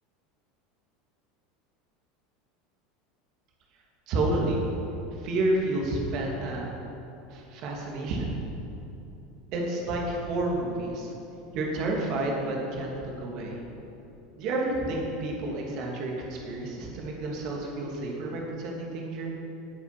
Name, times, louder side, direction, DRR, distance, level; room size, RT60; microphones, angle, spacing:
voice 1, 4.1-4.6 5.1-6.7 7.3-8.4 9.5-11.1 11.5-13.6 14.4-19.3, right 2 dB, 50° right, -1 dB, 3.0 m, -30 dB
19.0 x 8.7 x 6.1 m, 2.9 s
figure-of-eight pair, 75°, 0 cm